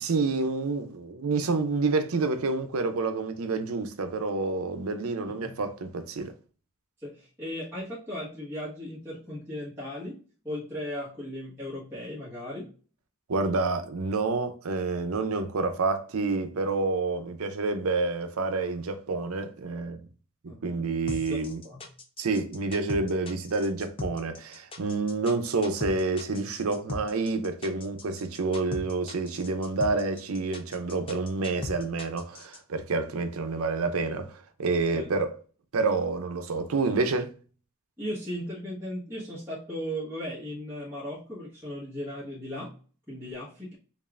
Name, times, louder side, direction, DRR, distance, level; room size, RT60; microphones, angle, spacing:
voice 1, 0.0-6.3 13.3-20.0 20.6-21.6 22.2-35.4 35.7-37.3, right 3 dB, 80° right, 0.6 m, -28 dB
voice 2, 5.3-5.6 7.0-10.2 10.4-12.7 20.5-20.6 21.3-21.9 34.9-35.1 38.0-42.7 43.1-43.7, equal, 10° right, 1.3 m, -37 dB
sound 1, 21.1-32.6, left 2 dB, 25° left, 0.6 m, -38 dB
5.3 x 2.4 x 2.4 m
head